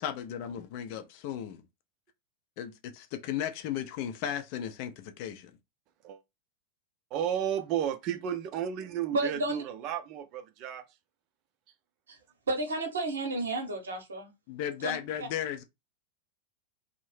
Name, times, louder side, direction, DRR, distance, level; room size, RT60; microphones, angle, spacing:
voice 1, 0.0-1.6 2.6-5.5 14.5-15.6, left 10 dB, 45° left, 0.4 m, -35 dB
voice 2, 7.1-10.8, right 9 dB, 40° right, 0.5 m, -33 dB
voice 3, 9.1-9.6 12.1-12.2 12.5-14.3 14.8-15.3, right 2 dB, 70° right, 0.8 m, -32 dB
2.6 x 2.0 x 3.1 m
figure-of-eight pair, 90°, 0 cm